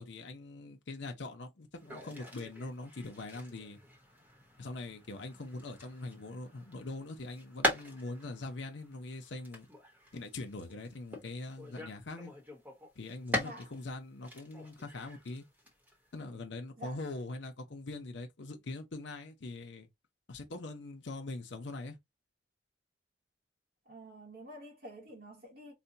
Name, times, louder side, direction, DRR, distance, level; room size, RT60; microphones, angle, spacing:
voice 1, 0.0-3.8 4.6-9.7 10.1-12.3 13.0-15.4 16.1-19.9 20.3-22.0, left 2 dB, 75° left, 0.7 m, -42 dB
sound 1, 1.7-13.9 14.2-16.2, left 1 dB, 10° right, 1.0 m, -41 dB
voice 2, 13.4-13.7 16.8-17.0 23.9-25.7, equal, 55° right, 1.1 m, -48 dB
4.2 x 2.2 x 2.6 m
head